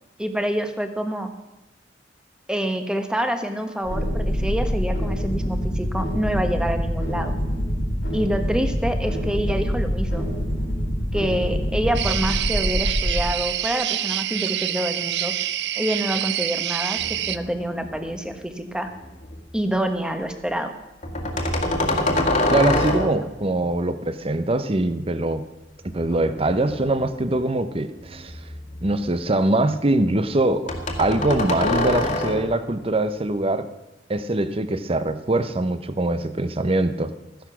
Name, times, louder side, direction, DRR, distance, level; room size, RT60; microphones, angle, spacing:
voice 1, 0.2-1.3 2.5-7.3 8.1-10.3 11.1-15.3 15.8-18.9 19.5-20.7, equal, 5° right, 7 dB, 1.2 m, -27 dB
sound 1, 3.8-13.3, equal, 80° left, 4.0 m, -25 dB
sound 2, 11.9-17.4, right 12 dB, 65° right, 0.5 m, -26 dB
sound 3, 17.0-18.3 18.7-19.4 21.0-23.4 25.9-27.4 28.0-29.2 30.7-32.6, left 1 dB, 40° left, 2.0 m, -26 dB
voice 2, 22.5-25.5 25.8-28.3 28.8-30.7 31.0-33.7 34.1-37.1, right 2 dB, 30° right, 11 dB, 0.8 m, -23 dB
14.0 x 10.5 x 6.2 m, 0.99 s
head